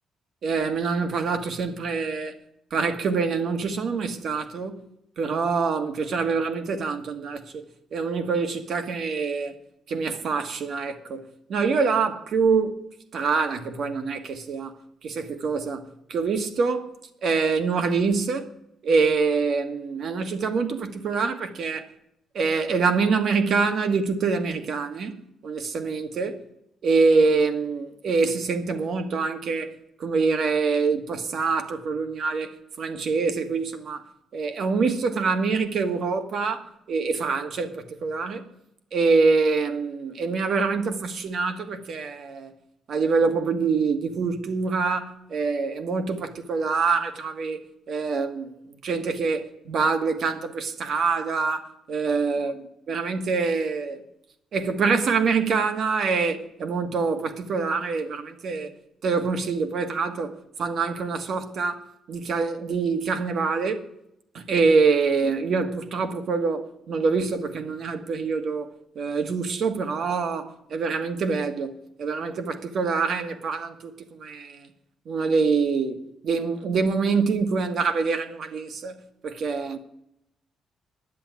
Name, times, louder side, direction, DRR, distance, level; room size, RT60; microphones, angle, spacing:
voice 1, 0.4-2.4 2.7-4.8 5.2-7.6 7.9-9.6 9.9-11.2 11.5-12.8 13.1-14.7 15.0-16.9 17.2-18.5 18.8-21.9 22.3-25.2 25.4-26.4 26.8-29.7 30.0-34.0 34.3-38.5 38.9-42.5 42.9-47.6 47.9-48.6 48.8-52.6 52.9-54.0 54.5-58.7 59.0-60.3 60.6-61.8 62.1-63.9 64.3-68.7 68.9-74.7 75.1-76.0 76.2-78.9 79.2-79.8, right 4 dB, 60° right, 1.4 m, -25 dB
10.5 x 8.0 x 9.2 m
cardioid pair, 90°, 0 cm